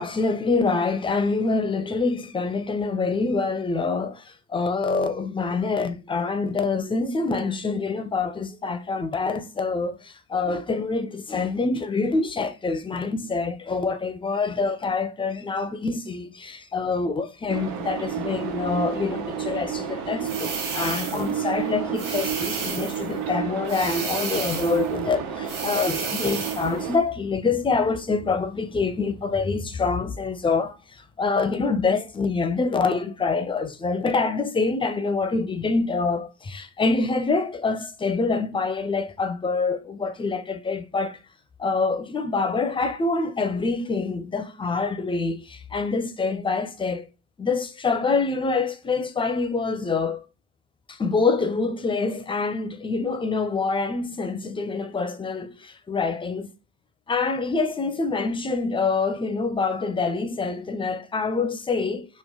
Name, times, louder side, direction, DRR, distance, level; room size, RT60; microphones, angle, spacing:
voice 1, 0.0-41.2 41.6-47.1 47.4-50.2 50.9-56.5 57.1-62.2, left 4 dB, 15° left, 0.4 m, -26 dB
sound 1, 17.5-27.0, right 7 dB, 75° right, 0.9 m, -31 dB
sound 2, 20.2-21.3 22.0-23.1 23.7-24.9 25.5-26.7, right 5 dB, 55° right, 1.2 m, -32 dB
3.1 x 2.2 x 3.5 m
supercardioid pair, 90°, 37 cm